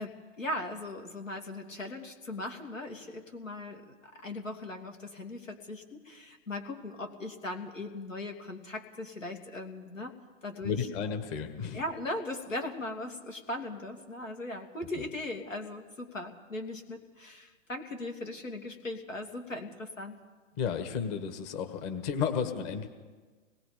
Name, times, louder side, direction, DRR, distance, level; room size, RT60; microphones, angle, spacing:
voice 1, 0.0-10.1 10.4-10.9 11.7-20.2, left 2 dB, 85° left, 4 dB, 2.7 m, -39 dB
voice 2, 10.6-11.8 20.6-22.9, left 7 dB, 35° left, 6 dB, 1.8 m, -32 dB
25.0 x 20.0 x 5.1 m, 1.4 s
hypercardioid pair, 125°, 37 cm